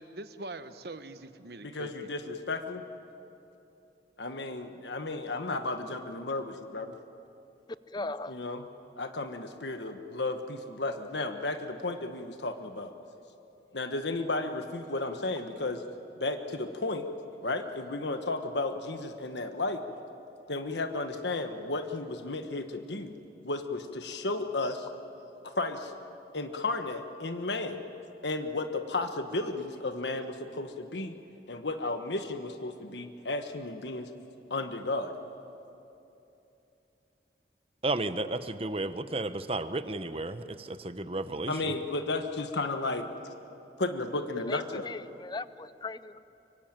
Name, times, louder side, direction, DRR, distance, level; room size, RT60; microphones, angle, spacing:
voice 1, 0.0-2.3, right 2 dB, 65° right, 10 dB, 1.1 m, -43 dB
voice 2, 1.6-2.8 4.2-6.9 8.0-8.7 9.0-12.9 13.7-15.8 16.2-17.1 17.4-19.8 20.5-23.2 23.4-24.9 25.4-25.9 26.3-27.8 28.2-31.2 31.5-34.1 34.5-35.1 41.5-43.0 43.8-44.9, left 2 dB, 85° left, 7 dB, 1.4 m, -33 dB
voice 3, 7.9-8.4 44.5-46.2, left 3 dB, 25° left, 15 dB, 0.5 m, -38 dB
voice 4, 37.8-41.7, right 2 dB, 35° right, 11 dB, 0.9 m, -33 dB
25.0 x 24.0 x 9.0 m, 2.9 s
head